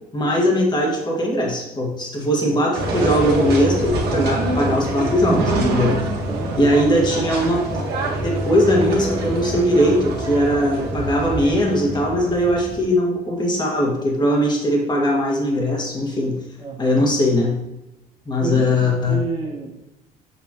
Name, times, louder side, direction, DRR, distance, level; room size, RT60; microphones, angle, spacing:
voice 1, 0.1-6.0 6.6-7.8 8.2-16.4 16.8-17.6 18.3-19.2, equal, 25° left, -1 dB, 1.8 m, -20 dB
sound 1, 2.7-12.8, right 2 dB, 70° right, 1.6 m, -25 dB
voice 2, 6.1-6.7 16.6-17.1 18.4-19.8, right 5 dB, 30° right, -1 dB, 1.7 m, -31 dB
7.2 x 5.4 x 3.0 m, 0.93 s
cardioid pair, 110°, 17 cm